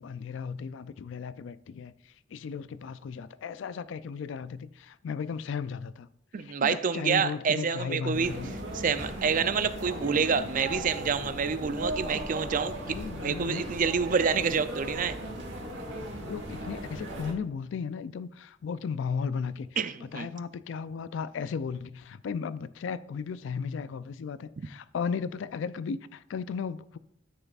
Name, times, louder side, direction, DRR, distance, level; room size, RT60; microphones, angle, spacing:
voice 1, 0.0-6.1 6.4-8.6 12.9-13.7 14.5-14.6 16.0-19.7 20.0-27.0, left 6 dB, 80° left, 0.3 m, -35 dB
voice 2, 6.3-8.3 8.7-13.0 13.2-15.2 19.8-20.3, right 6 dB, 45° right, 0.4 m, -28 dB
sound 1, 8.1-17.3, right 1 dB, 80° right, 1.9 m, -37 dB
13.0 x 6.7 x 2.4 m
head